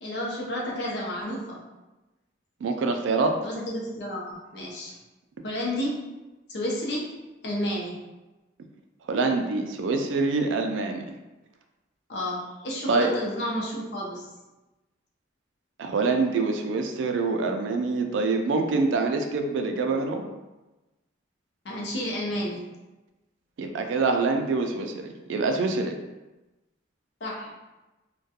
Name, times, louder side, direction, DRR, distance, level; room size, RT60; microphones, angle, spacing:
voice 1, 0.0-1.6 3.4-5.0 5.4-6.0 6.5-7.1 7.4-8.0 12.1-14.3 21.6-22.6 27.2-27.5, equal, 60° left, -3 dB, 0.6 m, -31 dB
voice 2, 2.6-3.3 9.1-11.1 12.9-13.1 15.8-20.2 23.6-26.0, right 3 dB, 75° right, 5 dB, 0.3 m, -25 dB
2.2 x 2.2 x 2.7 m, 1.1 s
head